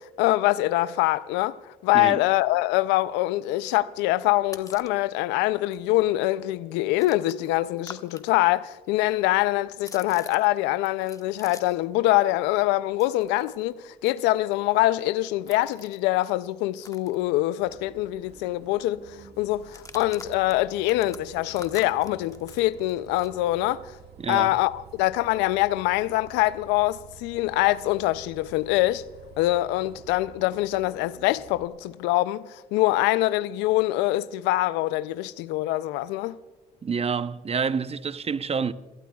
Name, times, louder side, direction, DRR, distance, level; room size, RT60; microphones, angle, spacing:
voice 1, 0.0-24.0 24.3-29.1 29.4-36.4, left 17 dB, 90° left, 0.4 m, -24 dB
sound 1, 4.2-5.0 5.4-5.5 5.7-8.3 8.5-11.9 12.2-17.8 18.1-18.2 18.5-18.9 19.6-23.4, left 3 dB, 20° left, 1.1 m, -48 dB
Bus, 17.6-31.7, right 7 dB, 70° right, 1.8 m, -50 dB
voice 2, 24.2-24.5 36.8-38.7, right 6 dB, 35° right, 0.7 m, -28 dB
26.0 x 18.0 x 2.3 m
supercardioid pair, 60°, 17 cm